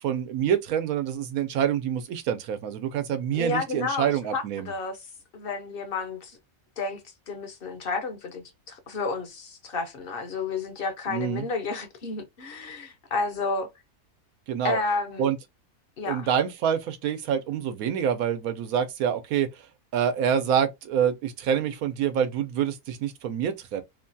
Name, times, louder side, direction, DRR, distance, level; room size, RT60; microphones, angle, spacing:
voice 1, 0.0-4.7 11.1-11.5 14.5-14.8 15.2-15.4 16.1-19.5 19.9-23.8, right 8 dB, 85° right, 1.1 m, -26 dB
voice 2, 3.3-5.0 5.3-6.4 6.8-7.0 7.3-13.7 14.6-15.3 16.0-16.3, left 4 dB, 50° left, 0.8 m, -31 dB
3.0 x 2.2 x 2.6 m
omnidirectional pair, 1.5 m